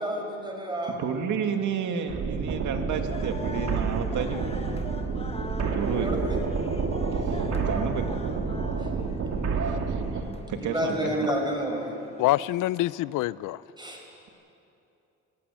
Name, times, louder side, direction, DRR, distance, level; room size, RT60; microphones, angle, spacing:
voice 1, 0.0-1.0 5.9-6.4 8.8-8.9 10.5-11.9 13.8-14.0, right 1 dB, 15° right, 6.1 m, -30 dB
voice 2, 1.0-4.5 5.7-6.2 7.2-8.2 9.6-11.1, right 6 dB, 75° right, 2.2 m, -31 dB
sound 1, 2.1-10.2, right 4 dB, 60° right, 2.4 m, -29 dB
sound 2, 3.1-12.5, left 3 dB, 20° left, 1.6 m, -44 dB
voice 3, 12.2-13.6, left 16 dB, 85° left, 0.5 m, -25 dB
21.5 x 16.0 x 9.9 m
cardioid pair, 90°, 30 cm